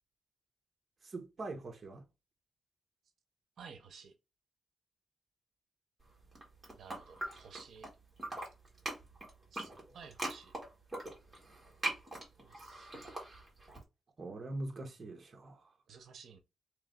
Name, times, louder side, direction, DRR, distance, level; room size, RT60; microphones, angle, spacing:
voice 1, 1.0-2.0 14.2-15.7, right 2 dB, 35° right, 0.8 m, -43 dB
voice 2, 3.6-4.1 6.8-7.9 9.5-10.5 12.4-13.1 15.9-16.4, right 6 dB, 70° right, 0.7 m, -54 dB
sound 1, 6.2-7.9 8.2-13.8, right 2 dB, 10° right, 1.7 m, -41 dB
3.1 x 3.1 x 3.6 m
wide cardioid pair, 170°, 0 cm